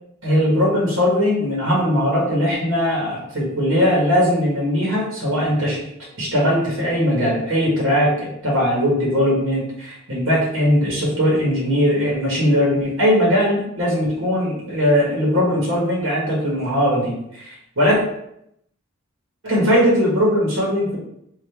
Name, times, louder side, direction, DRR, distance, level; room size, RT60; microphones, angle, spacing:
voice 1, 0.2-5.8 6.2-17.5 17.8-18.0 19.4-21.0, equal, 85° right, -5 dB, 1.5 m, -19 dB
3.8 x 2.6 x 3.4 m, 0.75 s
head